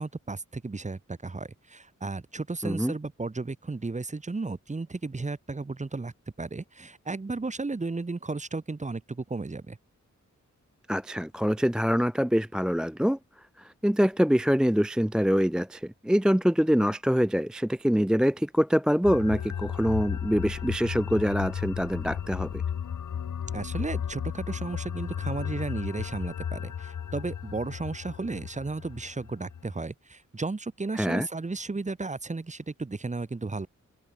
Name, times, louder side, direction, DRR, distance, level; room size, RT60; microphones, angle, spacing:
voice 1, 0.0-6.1 6.4-9.8 23.5-33.7, right 3 dB, 25° right, 1.1 m, -34 dB
voice 2, 2.6-2.9 10.9-13.2 13.6-22.6 30.9-31.3, equal, 5° right, 0.3 m, -25 dB
sound 1, 19.0-29.8, left 8 dB, 85° left, 1.4 m, -34 dB
wide cardioid pair, 95°, 30 cm